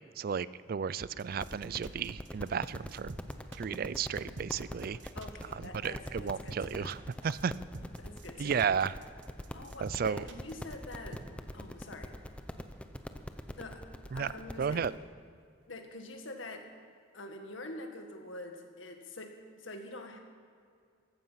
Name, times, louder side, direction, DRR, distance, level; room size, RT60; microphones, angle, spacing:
voice 1, 0.2-3.1 3.6-5.0 5.8-7.5 8.4-8.9 9.8-10.2 14.1-14.3 14.6-14.9, right 6 dB, 50° right, 18 dB, 0.4 m, -33 dB
sound 1, 1.0-11.2, right 2 dB, 75° right, 1.1 m, -48 dB
sound 2, 1.3-15.0, equal, 5° left, 0.7 m, -44 dB
voice 2, 5.1-7.0 7.8-8.7 9.5-11.3 11.5-12.2 13.6-13.8 14.1-15.0 15.7-16.7 17.1-20.2, left 2 dB, 90° left, 4 dB, 1.9 m, -46 dB
15.0 x 14.5 x 5.8 m, 2.2 s
head